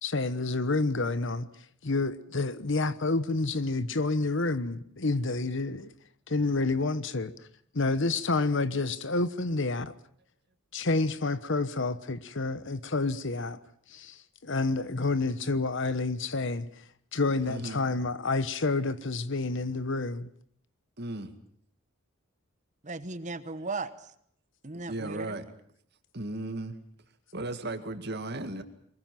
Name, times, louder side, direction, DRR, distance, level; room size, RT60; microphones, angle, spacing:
voice 1, 0.0-1.5 1.8-5.9 6.3-7.3 7.7-9.9 10.7-13.6 13.9-14.2 14.4-16.7 17.1-20.3, left 3 dB, 60° left, 1.1 m, -29 dB
voice 2, 17.4-18.1 21.0-21.3 24.7-25.5 26.1-26.7 27.3-28.6, right 2 dB, 50° right, 2.2 m, -36 dB
voice 3, 22.8-24.1 24.6-25.4, right 3 dB, 35° right, 1.1 m, -36 dB
23.5 x 21.5 x 7.6 m
head